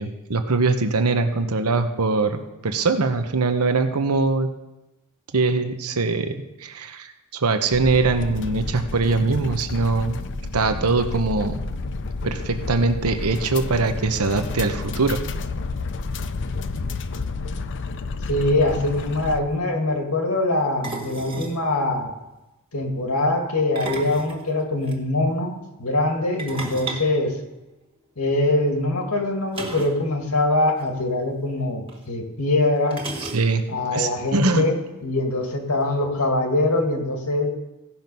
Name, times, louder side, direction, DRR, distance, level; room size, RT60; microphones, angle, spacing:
voice 1, 0.0-4.5 5.3-10.2 10.5-11.6 12.2-15.2 33.3-33.6 33.9-34.7, right 3 dB, 85° right, 7 dB, 0.9 m, -22 dB
sound 1, 7.7-19.4, left 3 dB, 55° left, 0.6 m, -30 dB
voice 2, 18.3-22.1 22.7-25.5 25.8-27.4 28.2-33.1 33.7-37.5, left 2 dB, 90° left, 4 dB, 1.8 m, -23 dB
sound 2, 18.5-18.6 18.8-19.0 20.8-21.6 23.6-25.0 26.4-28.0 29.5-30.0 30.3-30.4 30.7-30.9 31.9-32.0 32.9-33.8, right 2 dB, 25° right, 1.7 m, -34 dB
16.0 x 6.1 x 5.4 m, 1.0 s
head